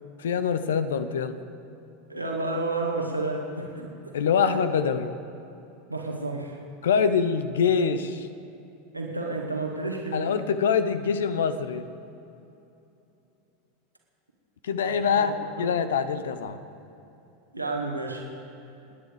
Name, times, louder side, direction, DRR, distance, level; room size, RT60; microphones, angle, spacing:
voice 1, 0.2-1.4 4.1-5.1 6.8-8.3 10.1-11.9 14.6-16.6, left 6 dB, 65° left, 11 dB, 1.0 m, -24 dB
voice 2, 2.1-4.7 5.9-6.6 8.9-10.3 14.8-15.7 17.5-18.2, right 2 dB, 90° right, 0 dB, 2.1 m, -31 dB
28.0 x 10.0 x 5.1 m, 2.9 s
figure-of-eight pair, 85°, 0 cm